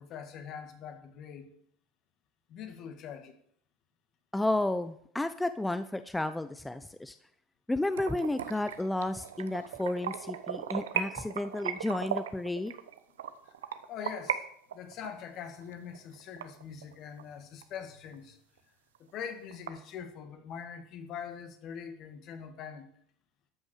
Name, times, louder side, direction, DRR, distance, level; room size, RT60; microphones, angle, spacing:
voice 1, 0.0-1.5 2.5-3.3 13.4-13.6 13.9-14.4 14.7-18.4 19.0-22.9, left 7 dB, 55° left, 7 dB, 2.1 m, -43 dB
voice 2, 4.3-7.1 7.7-12.7, left 2 dB, 10° left, 11 dB, 0.7 m, -32 dB
sound 1, 7.9-14.4 14.7-17.2 17.6-17.7 18.1-18.2 18.6-18.7 19.0-19.7, right 9 dB, 90° right, 0.9 m, -37 dB
13.0 x 6.3 x 6.5 m, 0.66 s
hypercardioid pair, 85°, 0 cm